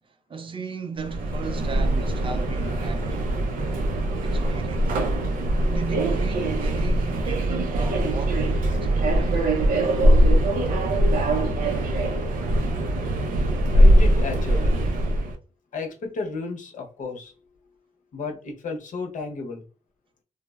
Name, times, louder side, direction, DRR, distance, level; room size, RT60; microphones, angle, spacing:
voice 1, 0.3-3.4 4.2-5.0 5.6-9.5, right 5 dB, 40° right, 0.4 m, -36 dB
Subway metro underground, 1.0-15.3, right 1 dB, 80° right, 0.6 m, -22 dB
voice 2, 2.2-3.0 9.1-9.2 13.3-14.8 15.7-17.7 18.1-19.6, left 4 dB, 65° left, 0.8 m, -34 dB
3.3 x 2.0 x 2.3 m
cardioid pair, 100°, 14 cm